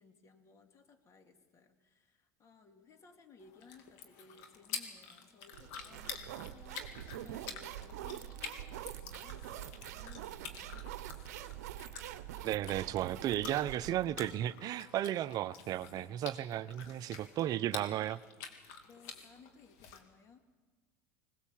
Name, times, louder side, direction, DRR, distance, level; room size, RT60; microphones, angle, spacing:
voice 1, 0.0-11.2 18.8-20.4, left 5 dB, 35° left, 6 dB, 2.6 m, -60 dB
sound 1, 3.4-20.0, left 6 dB, 70° left, 2.5 m, -49 dB
sound 2, 5.5-19.0, left 5 dB, 50° left, 4.6 m, -64 dB
sound 3, 5.5-14.3, right 13 dB, 80° right, 0.8 m, -45 dB
voice 2, 12.4-18.2, right 12 dB, 50° right, 16 dB, 0.7 m, -34 dB
20.5 x 19.0 x 7.4 m, 1.3 s
hypercardioid pair, 95°, 8 cm